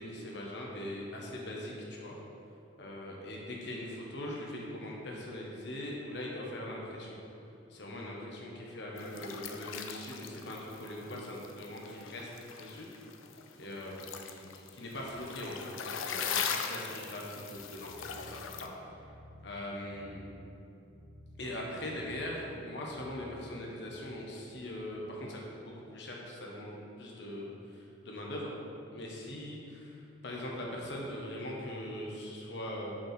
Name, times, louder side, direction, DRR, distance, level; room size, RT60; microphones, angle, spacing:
voice 1, 0.0-2.2 2.8-7.2 7.7-12.3 12.6-12.9 13.6-18.7 19.4-20.2 21.4-28.5 28.9-32.9, left 1 dB, 60° left, -2 dB, 1.2 m, -41 dB
sound 1, 9.0-18.7, left 7 dB, 85° left, 0.5 m, -40 dB
sound 2, 17.7-24.0, left 1 dB, 15° left, 0.6 m, -54 dB
6.3 x 4.6 x 5.8 m, 2.8 s
head